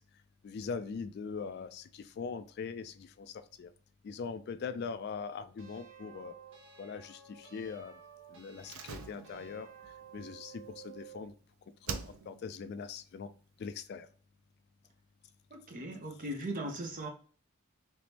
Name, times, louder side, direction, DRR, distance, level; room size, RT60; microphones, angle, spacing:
voice 1, 0.4-3.7 4.0-6.3 6.8-7.9 8.3-9.7 10.1-11.3 11.9-13.3 13.6-14.1, left 5 dB, 50° left, 0.3 m, -41 dB
sound 1, 5.6-11.3, right 8 dB, 60° right, 1.2 m, -54 dB
Slam, 8.6-11.4 11.8-12.6 12.9-13.0, right 5 dB, 80° right, 0.5 m, -44 dB
voice 2, 15.5-17.1, right 1 dB, 40° right, 0.7 m, -38 dB
3.4 x 3.0 x 2.8 m
head